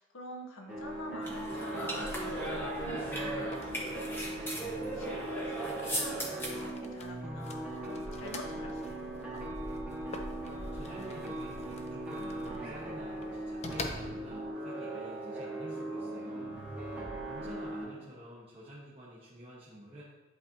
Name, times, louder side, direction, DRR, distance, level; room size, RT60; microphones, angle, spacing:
voice 1, 0.0-9.4 16.9-17.9, left 1 dB, 70° left, 2 dB, 0.9 m, -48 dB
sound 1, 0.7-17.8, right 1 dB, 5° right, 1.6 m, -39 dB
sound 2, 1.2-6.7, right 1 dB, 10° left, 0.9 m, -37 dB
sound 3, 1.9-14.5, left 2 dB, 30° left, 0.5 m, -48 dB
voice 2, 10.7-16.5 17.3-20.0, equal, 25° right, -9 dB, 1.1 m, -49 dB
10.5 x 4.2 x 2.7 m, 1.2 s
head